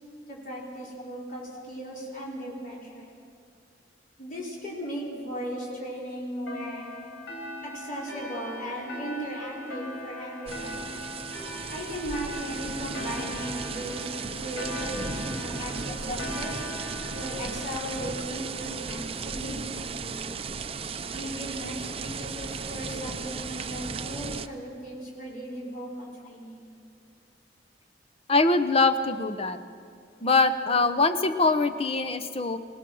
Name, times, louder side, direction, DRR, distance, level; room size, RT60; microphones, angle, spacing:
voice 1, 0.3-3.1 4.2-6.9 7.7-10.9 11.7-16.6 17.1-20.2 21.1-26.7, equal, 50° left, -5 dB, 5.1 m, -37 dB
sound 1, 6.5-19.6, left 1 dB, 90° left, 4.5 m, -40 dB
sound 2, 10.5-24.5, right 5 dB, 30° right, 0.6 m, -35 dB
voice 2, 28.3-29.6 30.2-32.6, left 3 dB, 35° left, 10 dB, 0.9 m, -23 dB
27.5 x 18.5 x 6.3 m, 2.4 s
head